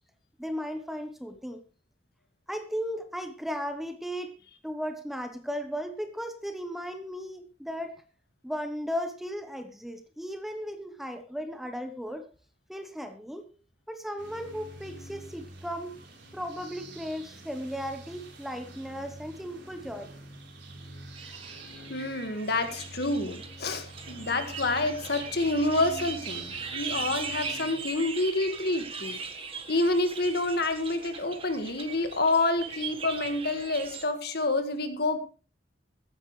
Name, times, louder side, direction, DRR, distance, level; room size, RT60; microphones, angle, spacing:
voice 1, 0.4-1.6 2.5-4.3 4.6-7.9 8.4-12.3 12.7-13.5 13.9-16.0 16.3-20.1, equal, ahead, 1.0 m, -36 dB
sound 1, 14.2-27.8, right 2 dB, 70° right, 3.9 m, -45 dB
sound 2, 21.1-34.0, right 5 dB, 30° right, 1.5 m, -40 dB
voice 2, 21.9-29.2 29.7-35.2, left 2 dB, 55° left, 1.8 m, -28 dB
15.0 x 13.0 x 3.2 m
head